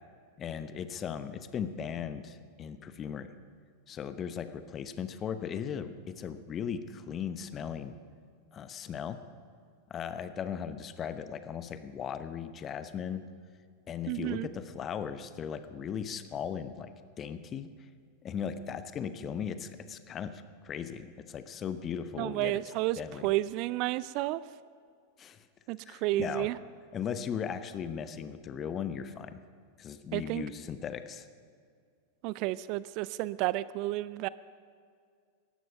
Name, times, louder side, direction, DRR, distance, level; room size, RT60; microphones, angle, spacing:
voice 1, 0.4-3.3 3.9-8.0 8.5-9.2 9.9-13.2 13.9-17.7 18.2-22.6 23.0-23.3 25.2-25.4 25.8-26.5 26.9-29.4 29.8-31.3, left 7 dB, 25° left, 11 dB, 1.0 m, -37 dB
voice 2, 14.1-14.5 22.2-24.4 25.7-26.6 30.1-30.5 32.2-34.3, right 17 dB, 40° right, 19 dB, 0.3 m, -31 dB
18.0 x 14.0 x 5.4 m, 2.2 s
figure-of-eight pair, 90°, 0 cm